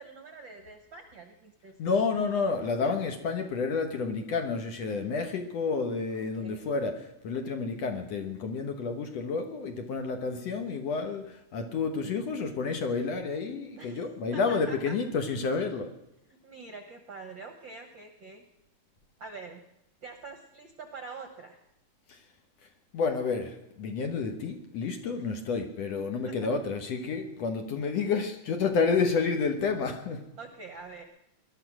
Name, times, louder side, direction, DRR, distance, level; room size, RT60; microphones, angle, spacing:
voice 1, 0.0-1.8 6.2-6.7 13.8-14.0 14.3-15.0 16.3-18.4 19.2-19.6 20.0-21.6 25.1-25.2 26.2-26.3 30.4-31.0, right 4 dB, 55° right, 6 dB, 1.3 m, -45 dB
voice 2, 1.8-16.0 22.1-22.2 22.9-30.2, left 4 dB, 60° left, 6 dB, 2.2 m, -30 dB
20.0 x 12.0 x 6.1 m, 0.84 s
omnidirectional pair, 3.8 m